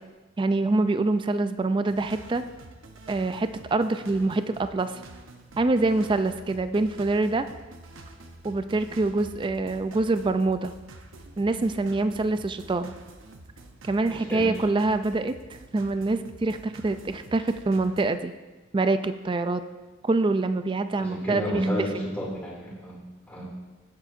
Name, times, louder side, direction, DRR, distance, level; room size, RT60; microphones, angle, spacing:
voice 1, 0.4-2.4 3.1-4.9 5.6-7.5 8.4-10.7 11.4-12.9 13.8-15.3 15.7-18.3 18.7-19.6 20.0-21.7 21.9-22.0, right 2 dB, 25° right, 10 dB, 0.4 m, -25 dB
sound 1, 1.9-18.0, right 2 dB, 80° right, 0.9 m, -47 dB
voice 2, 14.1-14.5 21.0-23.0 23.3-23.5, equal, 10° left, -5 dB, 2.4 m, -31 dB
17.0 x 7.5 x 2.6 m, 1.2 s
head